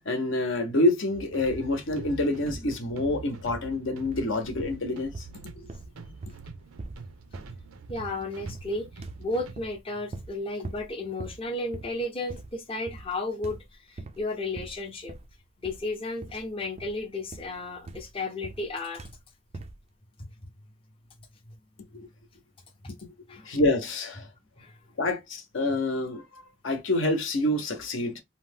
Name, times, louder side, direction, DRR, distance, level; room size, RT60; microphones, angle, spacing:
voice 1, 0.1-5.3 22.0-22.1 23.5-24.3 25.0-28.2, left 1 dB, 60° left, 0.7 m, -27 dB
sound 1, 1.1-9.5, right 3 dB, 85° right, 0.5 m, -44 dB
sound 2, 4.1-4.3 4.6-5.4 5.7-8.2 8.5-8.8 9.0-9.8 10.1-10.4 10.6-10.9 11.2-11.5 11.7-12.0 12.3-12.6 12.9-13.2 13.4-14.2 14.6-15.4 15.6-15.9 16.2-16.5 16.8-18.7 19.0-19.2 19.5-19.8, right 2 dB, 30° right, 0.3 m, -42 dB
voice 2, 7.9-15.1 15.6-19.1 22.8-22.9 23.3-23.5 24.6-24.8, left 2 dB, 25° left, 0.6 m, -33 dB
2.7 x 2.1 x 3.3 m
head